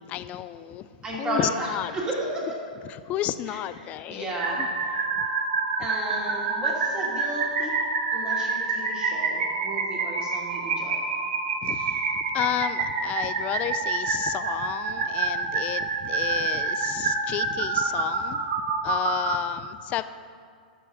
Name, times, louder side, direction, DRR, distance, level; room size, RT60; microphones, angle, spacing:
voice 1, 0.0-1.9 2.8-4.3 4.6-4.7 5.2-5.3 11.6-18.5 18.8-20.0, left 12 dB, 30° left, 13 dB, 0.4 m, -32 dB
voice 2, 1.0-1.7 1.9-2.4 4.1-4.6 5.8-7.7 8.1-11.0, right 1 dB, 20° right, -4 dB, 2.6 m, -33 dB
sound 1, 4.4-19.4, right 4 dB, 65° right, 1.2 m, -27 dB
13.0 x 4.7 x 6.0 m, 2.1 s
hypercardioid pair, 125°, 5 cm